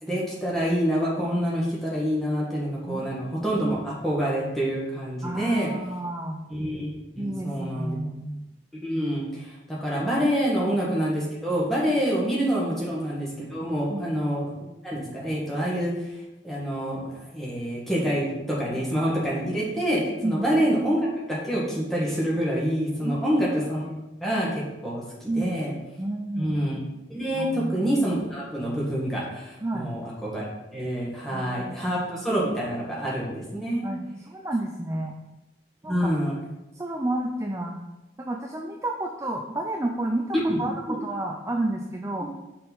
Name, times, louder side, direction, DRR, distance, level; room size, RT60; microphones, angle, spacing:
voice 1, 0.0-5.7 6.5-6.9 7.2-7.9 8.8-14.5 14.8-15.9 16.4-23.8 24.2-25.7 26.4-26.8 27.1-30.5 30.7-33.9 35.9-36.3 40.3-40.6 40.9-41.0, equal, ahead, -6 dB, 1.7 m, -27 dB
voice 2, 5.2-6.4 7.2-8.3 10.5-10.7 12.7-13.0 13.9-14.2 20.2-20.4 23.0-23.4 25.3-25.6 26.0-26.6 27.3-27.9 29.6-29.9 31.3-32.0 32.3-32.4 33.8-35.2 35.8-36.1 36.7-37.8 38.2-42.2, right 1 dB, 15° right, 1 dB, 0.4 m, -31 dB
5.7 x 4.2 x 5.3 m, 1.0 s
head